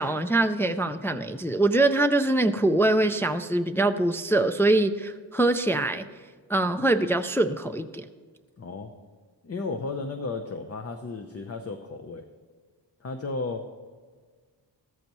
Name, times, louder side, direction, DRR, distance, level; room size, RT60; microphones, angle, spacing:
voice 1, 0.0-6.1 6.5-8.1, right 2 dB, 5° left, 7 dB, 0.3 m, -23 dB
voice 2, 8.6-8.9 9.4-12.2 13.0-13.6, left 3 dB, 35° left, 6 dB, 0.7 m, -34 dB
14.5 x 13.5 x 3.1 m, 1.5 s
wide cardioid pair, 125°, 43 cm